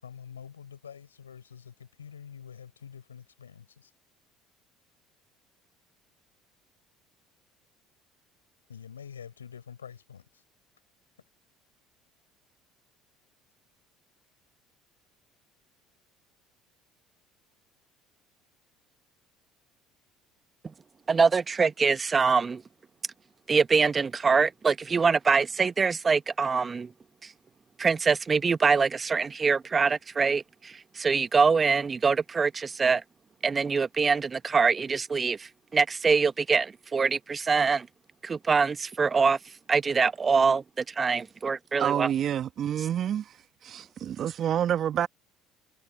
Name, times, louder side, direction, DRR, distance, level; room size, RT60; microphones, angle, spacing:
voice 1, 0.0-3.9 8.7-10.4, left 7 dB, 90° left, 6.7 m, -46 dB
voice 2, 21.1-22.6 23.5-26.9 27.2-27.3 27.8-33.0 33.4-37.9 38.2-42.1, right 5 dB, 30° right, 1.5 m, -24 dB
voice 3, 41.8-43.4 43.6-45.1, right 10 dB, 50° right, 1.5 m, -28 dB
hypercardioid pair, 60°, 0 cm